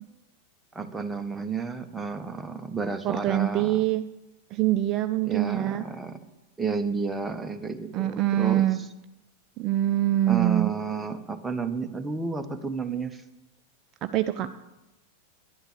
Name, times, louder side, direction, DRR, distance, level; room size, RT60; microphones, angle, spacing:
voice 1, 0.7-3.8 5.2-6.3 6.6-8.9 10.3-13.2 14.4-14.5, right 5 dB, 10° right, 6 dB, 1.1 m, -31 dB
voice 2, 3.0-4.0 4.5-5.8 7.9-8.8 9.6-10.7 14.0-14.5, right 13 dB, 35° right, 10 dB, 0.6 m, -24 dB
11.5 x 11.5 x 6.7 m, 0.98 s
figure-of-eight pair, 90°, 0 cm